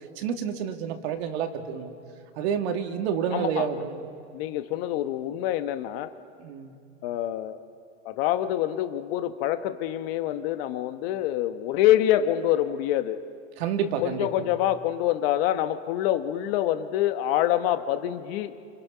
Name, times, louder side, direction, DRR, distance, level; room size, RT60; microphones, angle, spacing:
voice 1, 0.2-1.9 2.4-4.0 6.4-6.7 13.6-14.3, right 7 dB, 60° right, 5 dB, 2.6 m, -29 dB
voice 2, 3.3-3.8 4.3-6.1 7.0-7.6 8.0-13.2 14.0-18.5, left 12 dB, 55° left, 9 dB, 1.4 m, -26 dB
28.5 x 27.5 x 5.7 m, 2.3 s
supercardioid pair, 135°, 35 cm